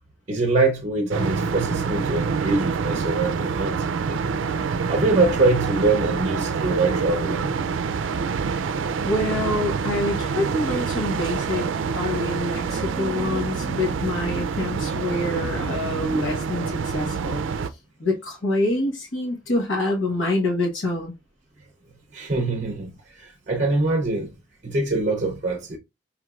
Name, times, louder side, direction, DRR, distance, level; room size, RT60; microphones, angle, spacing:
voice 1, 0.3-4.2 4.5-7.6 12.2-14.4 14.9-16.2 22.1-24.3 24.6-25.8, right 2 dB, 40° right, 0.6 m, -25 dB
sound 1, 1.1-17.7, right 5 dB, 85° right, 0.4 m, -26 dB
voice 2, 9.0-17.4 18.0-21.1, left 2 dB, 80° left, 1.1 m, -26 dB
5.4 x 3.1 x 2.3 m
head